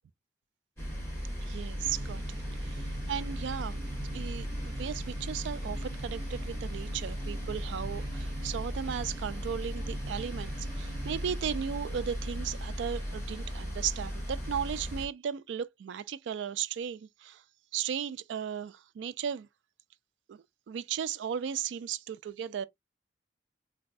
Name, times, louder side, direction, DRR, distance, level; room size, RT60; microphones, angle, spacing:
sound 1, 0.8-15.1, equal, 15° left, 1.4 m, -36 dB
voice 1, 1.4-2.2 2.6-3.8 4.1-17.4 17.7-19.5 20.3-22.7, right 8 dB, 80° right, 0.3 m, -36 dB
sound 2, 1.7-11.4, right 3 dB, 65° right, 0.7 m, -47 dB
3.9 x 2.2 x 2.5 m
head